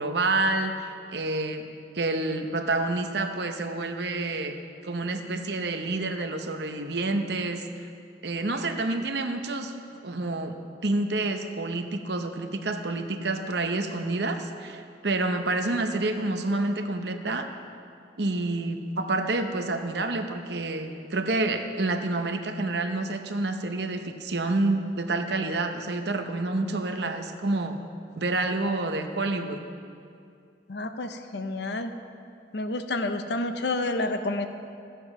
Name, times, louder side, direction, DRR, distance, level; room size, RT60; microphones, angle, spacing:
voice 1, 0.0-1.7 1.9-4.5 4.8-7.6 8.2-9.7 10.0-10.5 10.8-17.5 18.2-27.8 28.2-29.6, right 2 dB, 70° right, 6 dB, 0.9 m, -28 dB
voice 2, 30.7-31.9 32.5-34.5, left 2 dB, 70° left, 8 dB, 0.8 m, -29 dB
13.5 x 8.4 x 6.0 m, 2.5 s
head